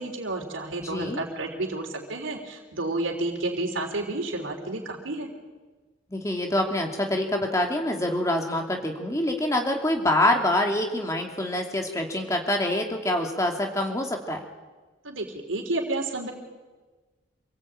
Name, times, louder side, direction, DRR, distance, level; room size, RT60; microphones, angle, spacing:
voice 1, 0.0-5.3 15.0-16.3, right 2 dB, 85° right, 0 dB, 3.5 m, -30 dB
voice 2, 0.8-1.2 6.1-14.4, left 1 dB, 15° left, 2 dB, 2.8 m, -26 dB
27.0 x 18.5 x 8.9 m, 1.3 s
head